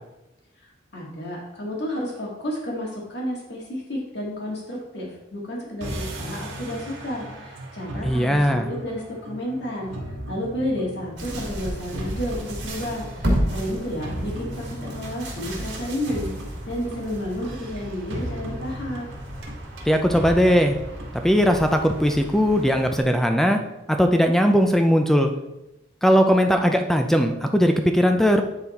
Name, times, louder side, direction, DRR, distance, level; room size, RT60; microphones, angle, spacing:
voice 1, 0.9-9.9 10.3-16.3 16.7-19.1, equal, 60° left, -2 dB, 2.0 m, -31 dB
sound 1, 5.8-22.2, right 1 dB, 85° right, 1.4 m, -37 dB
voice 2, 8.0-8.7 19.9-20.8 21.2-23.6 23.9-25.3 26.0-28.4, equal, ahead, 5 dB, 0.5 m, -19 dB
sound 2, 11.2-23.0, equal, 65° right, 2.3 m, -33 dB
9.3 x 4.1 x 4.2 m, 0.96 s
head